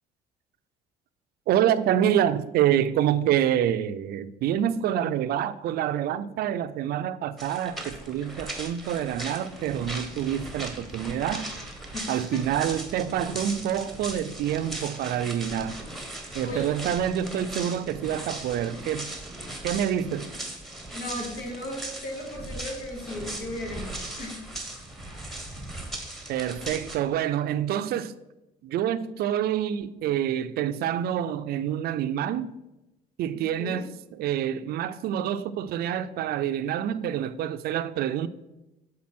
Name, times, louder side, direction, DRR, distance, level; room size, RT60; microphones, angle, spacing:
voice 1, 1.5-11.5 12.1-15.8 16.3-19.1 19.6-20.3 26.3-28.1 28.6-32.5 33.2-38.3, right 10 dB, 65° right, 0.4 m, -27 dB
sound 1, 7.4-27.0, right 1 dB, ahead, 1.1 m, -38 dB
voice 2, 20.9-24.4 33.6-33.8, left 1 dB, 75° left, 2.3 m, -36 dB
7.4 x 3.9 x 4.3 m
cardioid pair, 110°, 17 cm